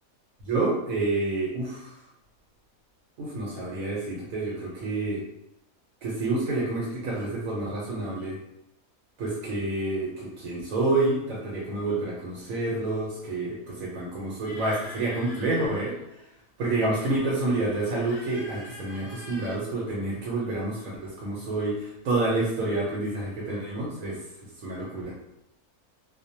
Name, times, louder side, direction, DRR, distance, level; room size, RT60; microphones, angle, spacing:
voice 1, 0.5-1.9 3.2-5.2 6.0-8.4 9.2-15.9 16.6-24.2 24.6-25.1, right 2 dB, 75° right, -5 dB, 1.0 m, -28 dB
sound 1, 14.5-16.3 16.9-19.6, left 2 dB, 65° left, 0.8 m, -46 dB
2.4 x 2.0 x 2.7 m, 0.82 s
omnidirectional pair, 1.5 m